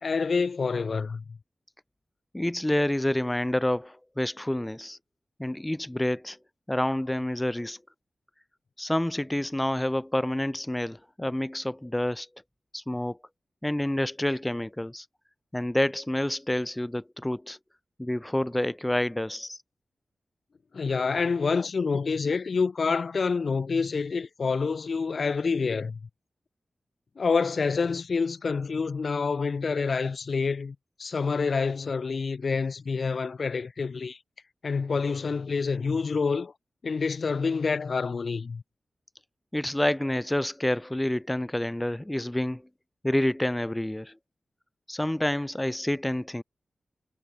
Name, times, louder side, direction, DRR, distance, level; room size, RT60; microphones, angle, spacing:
voice 1, 0.0-1.4 20.7-26.0 27.2-34.2 34.6-36.5 36.8-38.6, left 5 dB, 60° left, 1.9 m, -27 dB
voice 2, 2.3-5.0 5.4-6.4 6.7-7.8 8.8-12.3 12.7-13.2 13.6-15.1 15.5-17.6 18.0-19.6 39.5-42.6 43.0-44.2 44.9-46.4, left 1 dB, 10° left, 1.7 m, -28 dB
wide cardioid pair, 120°, 0 cm